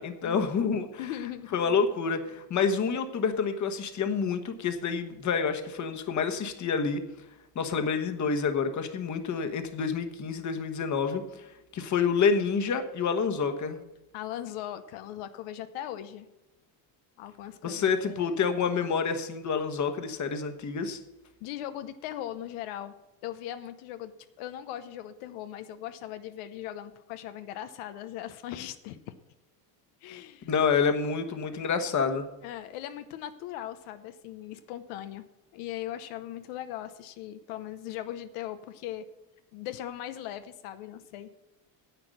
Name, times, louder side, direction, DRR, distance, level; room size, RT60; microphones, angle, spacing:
voice 1, 0.0-1.1 1.5-7.0 7.5-11.5 11.7-13.8 17.6-21.0 30.4-32.2, left 5 dB, 35° left, 7 dB, 1.3 m, -28 dB
voice 2, 1.0-1.6 14.1-16.3 17.2-18.5 21.4-22.9 23.2-24.1 24.4-29.0 30.0-30.5 32.4-35.2 35.5-39.1 39.5-41.3, left 12 dB, 85° left, 10 dB, 0.9 m, -39 dB
10.5 x 7.9 x 6.5 m, 0.97 s
cardioid pair, 130°, 49 cm